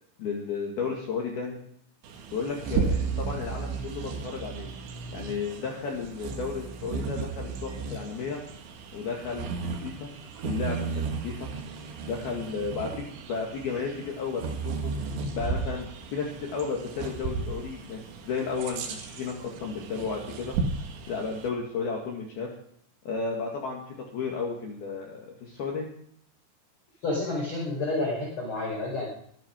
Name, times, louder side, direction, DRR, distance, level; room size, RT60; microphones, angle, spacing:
voice 1, 0.2-1.6 2.3-4.7 5.1-8.4 8.9-10.1 10.4-11.5 12.1-14.9 15.3-20.6 21.1-22.5 23.1-25.9, left 5 dB, 60° left, -1 dB, 3.5 m, -33 dB
Bird vocalization bird call bird song, 2.0-21.5, right 5 dB, 70° right, 4.2 m, -34 dB
voice 2, 27.0-29.1, left 2 dB, 25° left, -4 dB, 5.5 m, -29 dB
23.0 x 11.0 x 5.3 m, 0.68 s
omnidirectional pair, 5.8 m